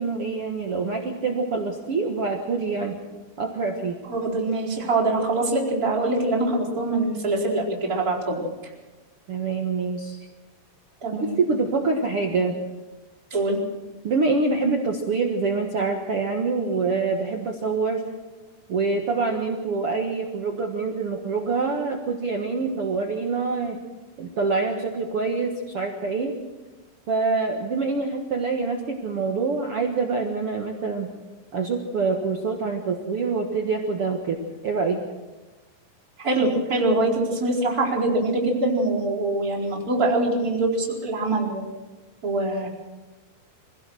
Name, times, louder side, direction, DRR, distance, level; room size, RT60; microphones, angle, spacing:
voice 1, 0.0-3.0 3.4-4.0 9.3-10.2 11.1-12.6 14.0-18.0 18.7-23.8 24.2-26.3 27.1-31.1 31.5-34.4 34.6-35.0, right 4 dB, 55° right, 2 dB, 1.8 m, -25 dB
voice 2, 4.1-8.4 11.0-11.4 13.3-13.6 36.2-41.6 42.2-42.7, right 2 dB, 20° right, -5 dB, 4.7 m, -24 dB
25.5 x 17.0 x 6.4 m, 1.2 s
omnidirectional pair, 4.4 m